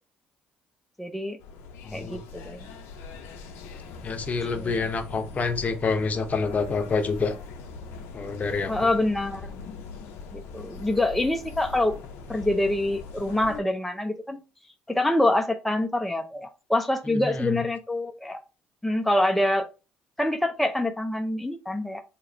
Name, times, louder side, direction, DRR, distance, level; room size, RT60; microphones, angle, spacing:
voice 1, 1.0-1.4 1.9-2.7 4.5-4.8 8.7-9.5 10.3-12.0 12.3-14.4 14.9-18.4 18.8-19.7 20.2-22.0, left 1 dB, 5° left, 5 dB, 0.5 m, -26 dB
sound 1, 1.4-13.6, left 4 dB, 80° left, 0.6 m, -41 dB
voice 2, 1.8-2.2 4.0-7.4 8.1-8.9 17.1-17.6, left 4 dB, 40° left, 7 dB, 0.7 m, -27 dB
2.9 x 2.4 x 4.2 m, 0.30 s
supercardioid pair, 75°, 4 cm